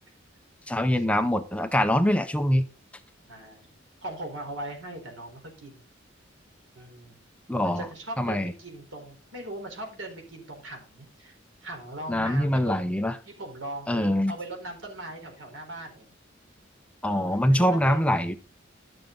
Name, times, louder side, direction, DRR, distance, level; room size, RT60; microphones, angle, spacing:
voice 1, 0.7-2.7 7.5-7.9 8.2-8.5 12.1-13.2 13.9-14.3 17.0-18.4, equal, 5° left, 9 dB, 0.6 m, -24 dB
voice 2, 3.3-3.7 4.0-5.8 6.7-7.2 7.6-11.4 11.6-13.0 13.3-16.1 17.0-18.0, right 1 dB, 80° right, 3 dB, 4.0 m, -39 dB
11.5 x 7.1 x 3.9 m, 0.33 s
head